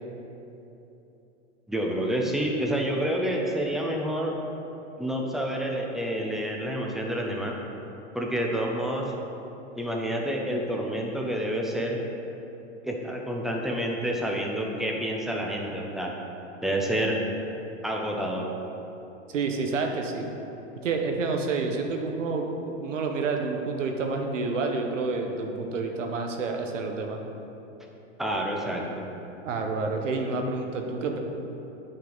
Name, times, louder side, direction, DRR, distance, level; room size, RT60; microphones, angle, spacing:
voice 1, 1.7-4.4 5.0-7.5 8.1-9.1 9.7-12.0 12.8-16.1 16.6-17.2 17.8-18.5 28.2-29.1, equal, ahead, -1 dB, 0.5 m, -28 dB
voice 2, 19.3-20.2 20.8-27.2 29.4-31.2, right 4 dB, 90° right, 3 dB, 1.1 m, -29 dB
8.6 x 5.7 x 3.9 m, 3.0 s
hypercardioid pair, 135°, 36 cm